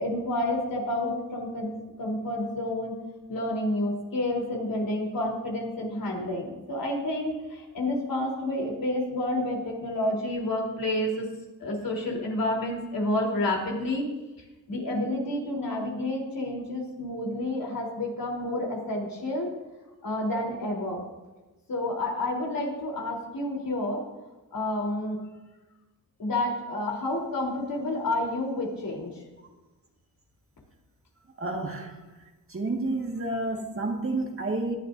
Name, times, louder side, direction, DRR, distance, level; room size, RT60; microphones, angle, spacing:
voice 1, 0.0-1.7 2.0-3.0 3.3-11.3 11.6-14.0 14.7-19.5 20.0-21.1 21.7-24.0 24.5-25.2 26.2-29.1, left 1 dB, 65° left, -1 dB, 3.8 m, -29 dB
voice 2, 31.4-32.0 32.5-34.8, right 2 dB, 35° right, 2 dB, 1.9 m, -30 dB
19.0 x 11.0 x 2.7 m, 1.1 s
cardioid pair, 85°, 37 cm